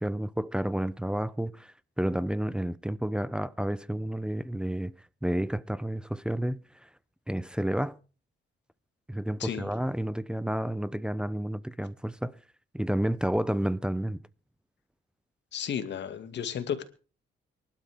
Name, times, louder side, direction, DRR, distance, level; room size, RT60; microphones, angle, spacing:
voice 1, 0.0-4.9 5.2-6.9 7.3-8.0 9.1-12.4 12.7-14.2, right 1 dB, 5° right, 0.7 m, -30 dB
voice 2, 15.5-16.8, left 8 dB, 60° left, 2.3 m, -33 dB
24.0 x 12.0 x 3.6 m
cardioid pair, 90°, 20 cm